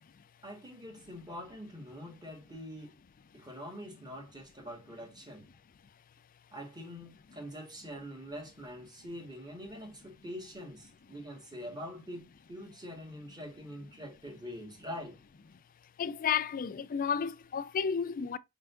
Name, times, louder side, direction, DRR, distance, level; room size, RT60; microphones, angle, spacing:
voice 1, 0.4-3.0 3.3-5.5 6.5-15.2, equal, 20° right, 1.4 m, -44 dB
voice 2, 16.0-18.4, left 7 dB, 40° left, 0.4 m, -32 dB
4.5 x 3.5 x 2.4 m
head